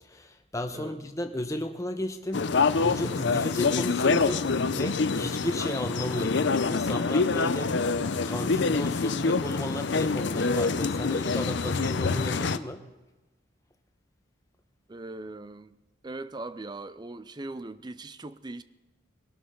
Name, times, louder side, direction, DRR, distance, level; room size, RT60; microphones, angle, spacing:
voice 1, 0.1-2.4 2.8-4.4 4.7-7.8 8.2-12.8, left 1 dB, 15° left, 1.0 m, -34 dB
sound 1, 2.3-12.6, left 4 dB, 60° left, 0.6 m, -26 dB
voice 2, 14.9-15.8 16.0-18.6, right 2 dB, 20° right, 0.4 m, -40 dB
22.0 x 12.0 x 3.8 m
head